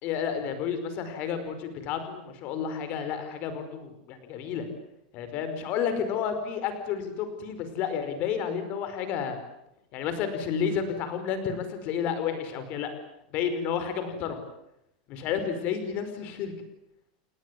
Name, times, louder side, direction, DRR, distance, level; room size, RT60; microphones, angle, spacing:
voice 1, 0.0-4.7 5.1-9.4 9.9-12.9 13.3-14.4 15.1-16.5, left 7 dB, 35° left, 9 dB, 5.0 m, -31 dB
29.5 x 20.5 x 9.6 m, 0.79 s
supercardioid pair, 175°, 4 cm